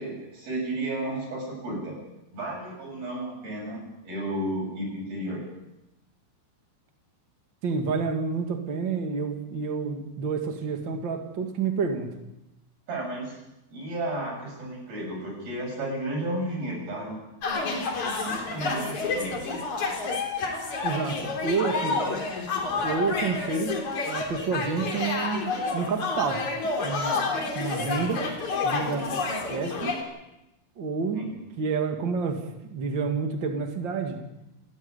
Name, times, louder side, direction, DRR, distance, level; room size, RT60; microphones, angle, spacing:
voice 1, 0.0-1.9 2.3-5.4 12.9-13.4 13.7-17.2 18.2-19.6 31.1-31.3, right 1 dB, 50° right, -1 dB, 9.7 m, -33 dB
voice 2, 7.6-12.1 20.8-22.0 22.8-27.2 27.5-28.3 28.6-29.1 29.5-29.9 30.8-34.2, right 5 dB, 75° right, 4 dB, 1.0 m, -29 dB
sound 1, 17.4-30.0, left 3 dB, 40° left, 4.3 m, -29 dB
28.5 x 12.0 x 9.7 m, 0.92 s
omnidirectional pair, 5.5 m